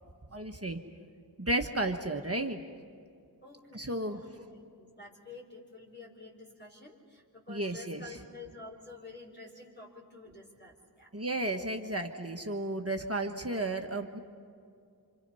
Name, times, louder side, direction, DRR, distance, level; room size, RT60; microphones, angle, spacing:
voice 1, 0.3-0.8 1.4-2.6 3.7-4.2 7.5-8.0 11.1-14.2, right 1 dB, 35° right, 4 dB, 1.4 m, -33 dB
voice 2, 3.4-11.1, left 3 dB, 25° left, -2 dB, 4.4 m, -50 dB
28.0 x 27.0 x 5.6 m, 2.3 s
wide cardioid pair, 50°, 42 cm